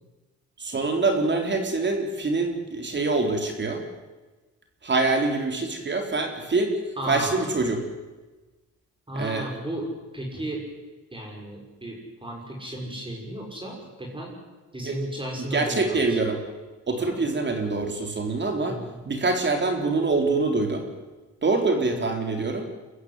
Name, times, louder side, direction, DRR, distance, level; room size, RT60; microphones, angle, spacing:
voice 1, 0.6-3.8 4.8-6.8 7.1-7.8 9.1-9.5 14.8-15.0 15.4-16.4 16.9-18.8 19.1-20.9 21.4-22.7, right 3 dB, 35° right, 4 dB, 3.9 m, -25 dB
voice 2, 7.0-7.5 9.1-10.6 11.1-14.3 14.7-16.2 17.0-17.2 18.6-19.1, right 1 dB, 15° right, 0 dB, 6.0 m, -34 dB
24.0 x 14.5 x 9.7 m, 1.2 s
cardioid pair, 90°, 30 cm